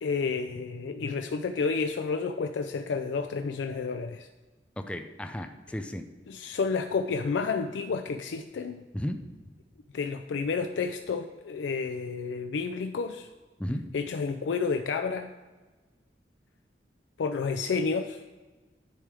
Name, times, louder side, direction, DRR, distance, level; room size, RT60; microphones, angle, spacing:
voice 1, 0.0-4.3 6.3-8.8 9.9-13.3 13.9-15.3 17.2-18.2, left 5 dB, 90° left, 7 dB, 0.4 m, -30 dB
voice 2, 4.8-6.0 8.9-9.2 13.6-13.8, equal, 5° left, 6 dB, 0.4 m, -34 dB
10.5 x 3.4 x 4.9 m, 1.3 s
head